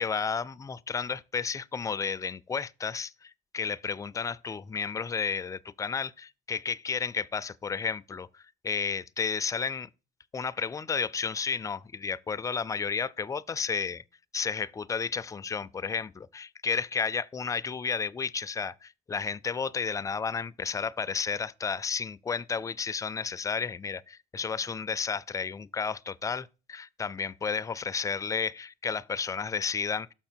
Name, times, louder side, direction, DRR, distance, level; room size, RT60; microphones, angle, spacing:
voice 1, 0.0-9.9 10.3-14.0 14.3-30.1, left 5 dB, 20° left, 0.3 m, -32 dB
6.7 x 5.6 x 4.3 m
cardioid pair, 110°, 17 cm